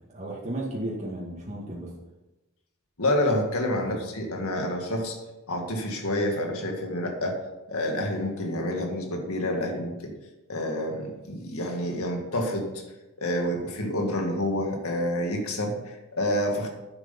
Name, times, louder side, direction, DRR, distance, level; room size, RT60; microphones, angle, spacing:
voice 1, 0.1-1.9 3.8-4.0, right 1 dB, 30° right, -4 dB, 2.0 m, -34 dB
voice 2, 3.0-5.2 5.5-7.4 7.7-10.1 10.5-12.7 13.2-16.7, left 1 dB, 85° left, 2 dB, 2.1 m, -28 dB
10.0 x 8.2 x 5.4 m, 1.0 s
head